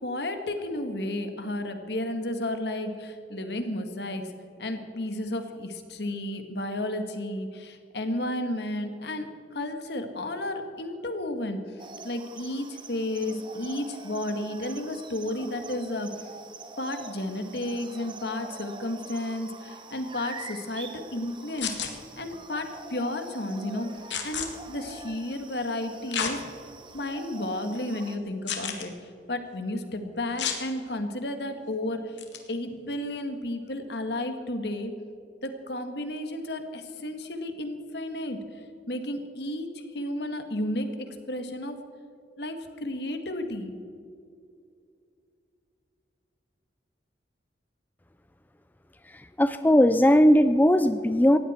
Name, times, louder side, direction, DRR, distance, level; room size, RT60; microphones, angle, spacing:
voice 1, 0.0-4.3 4.6-11.6 12.0-16.2 16.8-21.8 22.2-23.9 24.2-26.4 26.9-28.9 29.3-32.2 32.5-34.9 35.4-38.4 38.9-41.8 42.4-43.8, left 1 dB, 65° left, 7 dB, 1.7 m, -32 dB
sound 1, 11.8-28.2, right 4 dB, 25° right, 1.0 m, -45 dB
sound 2, 21.6-21.9 24.1-24.5 26.1-26.3 27.0-27.1 28.5-28.9 30.4-30.6 32.2-32.4, left 7 dB, 85° left, 2.0 m, -30 dB
voice 2, 49.1-51.4, equal, 10° left, 10 dB, 0.4 m, -19 dB
19.0 x 15.0 x 4.4 m, 2.4 s
head